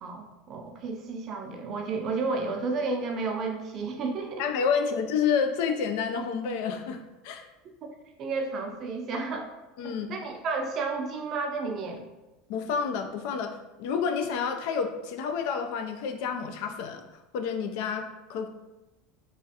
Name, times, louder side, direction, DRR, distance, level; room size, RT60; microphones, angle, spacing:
voice 1, 0.0-4.4 7.8-7.9 8.2-9.5 9.8-12.0, right 4 dB, 40° right, 3 dB, 0.4 m, -32 dB
voice 2, 4.4-7.4 9.8-10.1 12.5-17.0 17.3-18.5, left 6 dB, 65° left, 6 dB, 0.3 m, -29 dB
3.0 x 2.3 x 2.8 m, 1.0 s
supercardioid pair, 145°, 0 cm